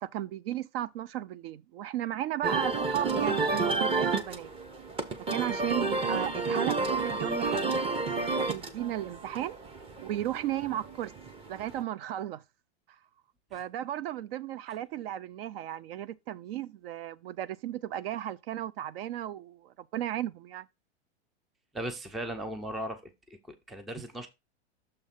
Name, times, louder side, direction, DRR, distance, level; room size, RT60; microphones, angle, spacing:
voice 1, 0.0-4.5 5.3-7.9 8.4-9.6 10.0-11.1 11.5-12.4 13.5-20.7, right 12 dB, 55° right, 0.6 m, -35 dB
sound 1, 2.4-11.8, right 3 dB, 15° right, 0.7 m, -31 dB
voice 2, 21.7-24.3, right 1 dB, ahead, 0.4 m, -38 dB
6.6 x 3.4 x 5.7 m
hypercardioid pair, 135°, 35 cm